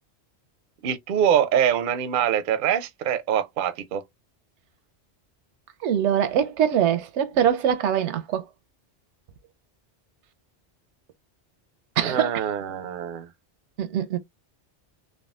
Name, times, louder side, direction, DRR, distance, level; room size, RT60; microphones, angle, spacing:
voice 1, 0.8-4.0 12.0-13.3, right 9 dB, 60° right, 0.6 m, -24 dB
voice 2, 5.8-8.4 12.0-12.3 13.8-14.2, right 9 dB, 85° right, 0.9 m, -23 dB
3.5 x 2.2 x 2.3 m
omnidirectional pair, 1.2 m